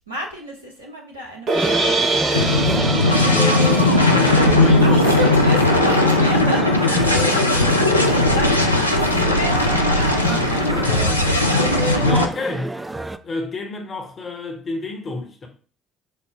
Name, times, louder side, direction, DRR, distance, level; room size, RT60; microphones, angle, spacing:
voice 1, 0.1-2.5 3.4-6.6 6.9-10.8, equal, 85° right, 0.8 m, -32 dB
sound 1, 1.5-13.2, right 1 dB, 15° right, 0.3 m, -28 dB
sound 2, 1.5-7.6, right 2 dB, 55° right, 0.7 m, -26 dB
sound 3, 2.3-12.3, left 2 dB, 90° left, 0.3 m, -17 dB
voice 2, 4.1-5.1 5.5-5.6 6.2-6.7 12.0-12.8 13.2-15.5, left 2 dB, 40° left, 0.9 m, -30 dB
5.7 x 2.0 x 3.6 m
figure-of-eight pair, 50°, 0 cm